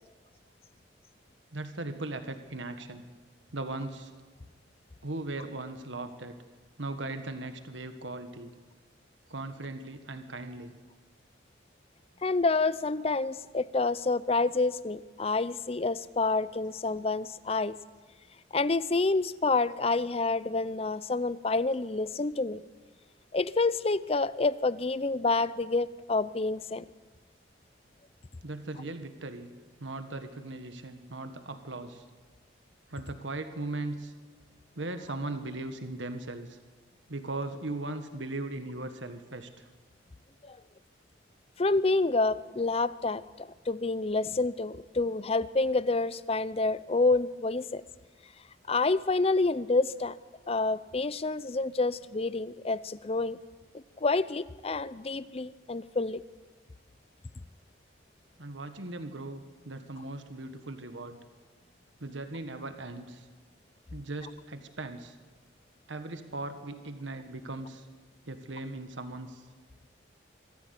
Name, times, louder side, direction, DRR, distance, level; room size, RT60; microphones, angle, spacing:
voice 1, 1.5-3.1 3.5-4.1 5.0-6.4 6.8-8.5 9.3-10.7 28.4-29.5 29.8-32.0 32.9-34.1 34.7-36.6 37.1-39.7 58.4-61.2 62.0-63.3 63.9-65.1 65.9-67.9 68.3-69.4, right 2 dB, 90° right, 8 dB, 1.5 m, -38 dB
voice 2, 12.2-17.8 18.5-22.6 23.3-26.8 40.4-40.6 41.6-47.8 48.7-50.2 50.5-53.4 54.0-56.2, left 3 dB, 35° left, 17 dB, 0.6 m, -28 dB
24.5 x 14.5 x 8.3 m, 1.3 s
head